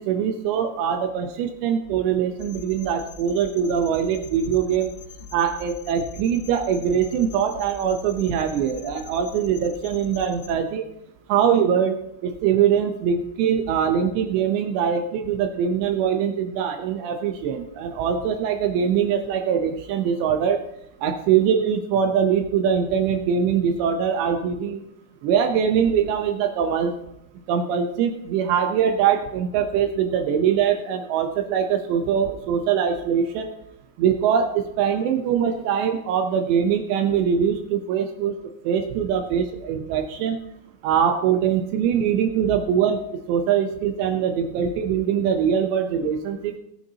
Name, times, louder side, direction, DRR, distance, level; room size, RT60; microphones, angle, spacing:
voice 1, 0.0-4.9 5.3-10.8 11.3-20.6 21.0-24.9 25.2-27.0 27.5-33.5 34.0-38.4 38.7-40.4 40.8-43.0 43.3-46.6, right 8 dB, 80° right, 5 dB, 2.8 m, -22 dB
sound 1, 2.4-10.5, left 5 dB, 80° left, 3.1 m, -43 dB
18.5 x 9.0 x 2.8 m, 0.80 s
omnidirectional pair, 5.5 m